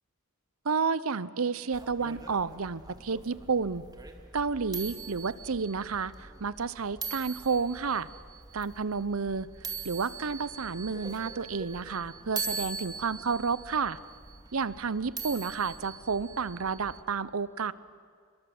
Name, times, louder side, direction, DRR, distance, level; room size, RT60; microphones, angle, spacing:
voice 1, 0.6-3.8 4.3-8.1 8.5-9.5 9.8-14.0 14.5-17.7, right 5 dB, 90° right, 18 dB, 0.8 m, -31 dB
sound 1, 1.7-17.0, right 4 dB, 20° right, 2.2 m, -42 dB
28.5 x 22.5 x 7.8 m, 2.2 s
head